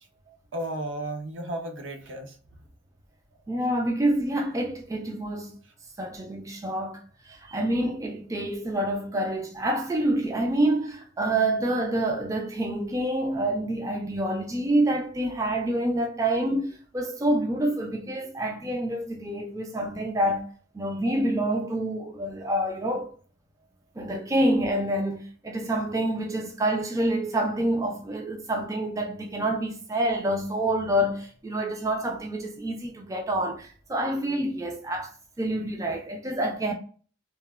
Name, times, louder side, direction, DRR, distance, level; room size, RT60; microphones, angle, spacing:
voice 1, 0.3-2.4, right 1 dB, 75° right, 0.6 m, -34 dB
voice 2, 3.5-5.6 6.0-20.5 20.7-23.1 24.0-36.7, right 1 dB, 15° right, 0.3 m, -27 dB
3.0 x 2.1 x 2.3 m
head